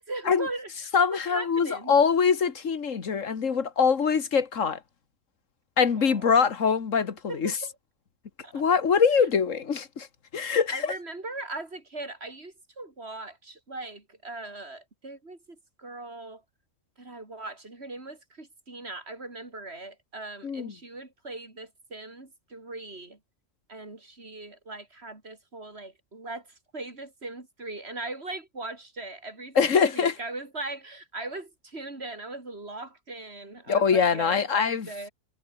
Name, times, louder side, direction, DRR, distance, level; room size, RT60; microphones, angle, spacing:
voice 1, 0.0-2.0 6.0-6.4 7.3-7.7 8.4-8.6 10.7-15.4 15.8-16.4 17.0-23.2 23.7-35.1, right 2 dB, 55° right, 4.0 m, -39 dB
voice 2, 0.9-4.8 5.8-7.6 8.5-10.1 10.3-11.0 20.4-20.7 29.6-30.2 33.7-34.9, left 6 dB, 80° left, 1.9 m, -23 dB
omnidirectional pair, 1.3 m